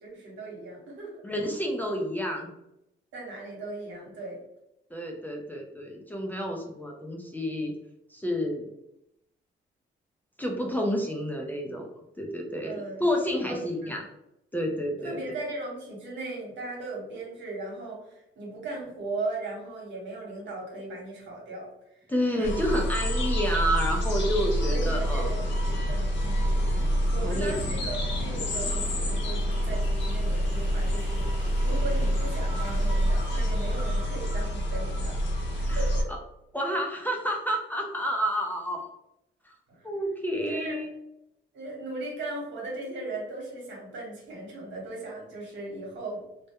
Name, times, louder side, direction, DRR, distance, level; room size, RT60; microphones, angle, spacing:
voice 1, 0.0-1.2 3.1-4.4 12.6-13.1 13.4-14.0 15.0-22.0 22.3-22.8 24.4-26.5 27.1-35.2 35.5-36.1 39.7-39.9 40.5-40.8 41.5-46.2, right 2 dB, 70° right, -2 dB, 1.0 m, -38 dB
voice 2, 1.2-2.5 4.9-7.7 8.1-8.7 10.4-11.9 12.2-14.0 14.5-15.2 22.1-25.3 27.2-27.5 35.6-35.8 36.1-36.2 36.5-38.9 39.4-39.5 39.8-40.9, equal, 10° left, 0 dB, 0.4 m, -29 dB
sound 1, 22.4-36.0, equal, 65° left, 0.7 m, -27 dB
sound 2, 24.9-34.0, left 1 dB, 35° left, 0.8 m, -43 dB
2.2 x 2.1 x 2.7 m, 0.83 s
cardioid pair, 90°, 20 cm